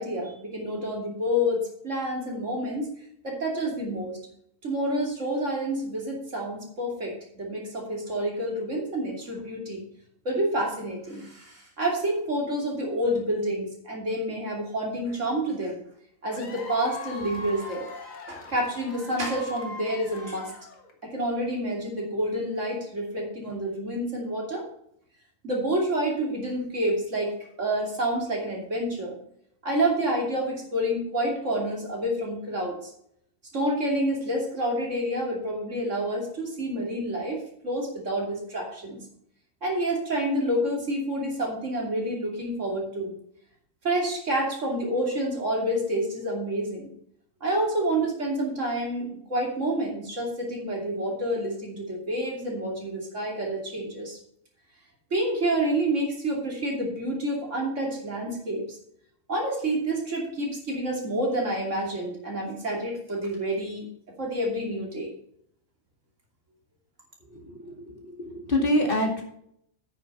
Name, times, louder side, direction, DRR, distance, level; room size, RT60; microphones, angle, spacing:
voice 1, 0.0-2.9 3.2-4.2 4.6-9.8 10.2-15.8 16.2-17.9 18.3-20.5 21.0-24.6 25.4-29.1 29.6-32.8 33.5-39.0 39.6-43.1 43.8-46.9 47.4-54.2 55.1-58.8 59.3-63.9 64.2-65.1, right 1 dB, 65° right, -1 dB, 3.1 m, -28 dB
Cheering / Applause / Crowd, 16.3-21.0, left 2 dB, 85° left, 2.0 m, -41 dB
voice 2, 67.2-69.2, left 1 dB, 40° left, 1 dB, 2.5 m, -27 dB
9.3 x 6.7 x 5.5 m, 0.70 s
omnidirectional pair, 1.4 m